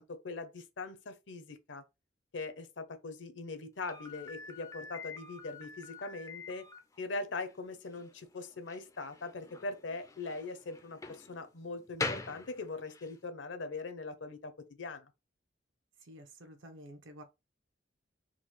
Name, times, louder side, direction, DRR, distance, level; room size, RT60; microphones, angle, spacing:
voice 1, 0.0-1.8 2.3-6.7 7.0-14.5 14.8-15.1, left 3 dB, 70° left, 0.7 m, -41 dB
Slam, 3.8-13.2, left 3 dB, 15° left, 0.3 m, -44 dB
voice 2, 16.0-17.2, equal, 80° right, 0.9 m, -51 dB
3.8 x 2.3 x 3.1 m
head